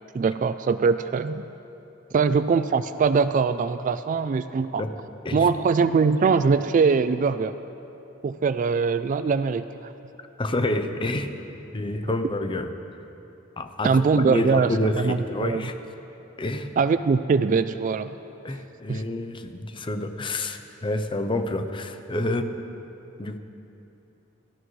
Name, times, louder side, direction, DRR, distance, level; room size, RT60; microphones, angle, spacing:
voice 1, 0.1-1.4 2.1-4.8 5.3-7.5 8.2-9.9 13.8-15.6 16.8-18.2 18.9-19.0, right 5 dB, 40° right, 12 dB, 0.3 m, -22 dB
voice 2, 10.4-11.3 11.7-12.7 13.6-15.7 16.4-16.7 18.4-22.5 23.2-23.4, left 1 dB, 25° left, 8 dB, 0.6 m, -28 dB
17.5 x 13.5 x 3.2 m, 2.9 s
head